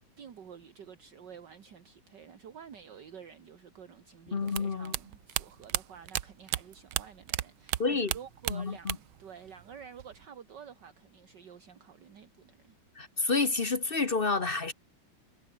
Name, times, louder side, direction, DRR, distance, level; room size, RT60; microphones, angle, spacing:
voice 1, 0.2-12.8, right 7 dB, 60° right, 2.2 m, -50 dB
voice 2, 4.3-4.9 7.8-8.1 8.5-9.0 13.0-14.7, left 4 dB, 35° left, 1.0 m, -29 dB
sound 1, 4.5-7.4 7.7-9.2 9.5-10.2, right 13 dB, 80° right, 1.7 m, -33 dB
omnidirectional pair, 2.3 m